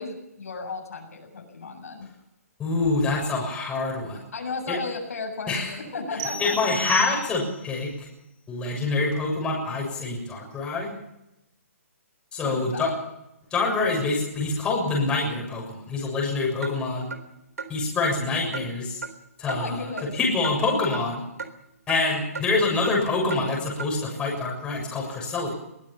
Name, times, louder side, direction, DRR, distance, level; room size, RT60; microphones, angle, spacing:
voice 1, 0.0-2.1 4.3-6.6 12.4-13.0 19.5-20.1, left 4 dB, 75° left, 3 dB, 7.7 m, -34 dB
voice 2, 2.6-4.2 4.7-4.8 5.5-5.7 6.4-8.1 8.5-10.9 12.3-12.9 13.5-17.1 17.7-19.0 19.4-19.9 20.1-21.2 21.9-25.5, left 3 dB, 10° left, -2 dB, 7.0 m, -26 dB
sound 1, 6.2-7.7, right 2 dB, 20° right, 1.9 m, -33 dB
Clock, 16.6-16.7 17.1-17.2 17.6-17.7 18.1-18.2 18.5-18.7 19.0-19.1 19.5-19.6 20.0-20.1 20.4-20.6 20.9-21.0 21.4-21.5 21.9-22.0 22.3-22.5 22.8-23.0 23.3-23.4 23.8-23.9, right 5 dB, 90° right, 3.8 m, -34 dB
22.0 x 17.0 x 7.1 m, 0.87 s
hypercardioid pair, 155°, 8 cm